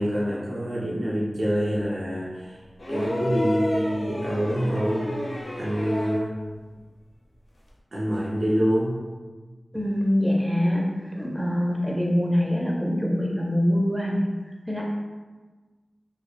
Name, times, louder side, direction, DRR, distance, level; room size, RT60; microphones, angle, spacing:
voice 1, 0.0-2.6 2.9-5.1 5.6-6.3 7.9-9.0, equal, 70° right, -6 dB, 0.4 m, -26 dB
sound 1, 2.8-6.3 7.7-7.8, left 1 dB, 80° left, 0.5 m, -31 dB
voice 2, 9.7-14.2 14.7-14.8, equal, ahead, -2 dB, 0.4 m, -24 dB
2.2 x 2.0 x 2.9 m, 1.3 s
cardioid pair, 40°, 0 cm